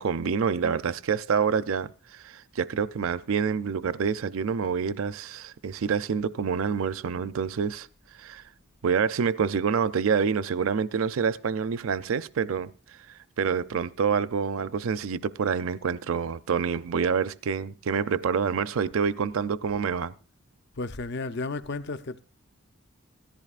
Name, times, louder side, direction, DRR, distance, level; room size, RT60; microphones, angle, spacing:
voice 1, 0.0-7.9 8.1-8.4 8.8-20.1, right 6 dB, 70° right, 0.5 m, -27 dB
voice 2, 20.8-22.2, left 3 dB, 50° left, 0.6 m, -33 dB
17.0 x 14.0 x 2.4 m
head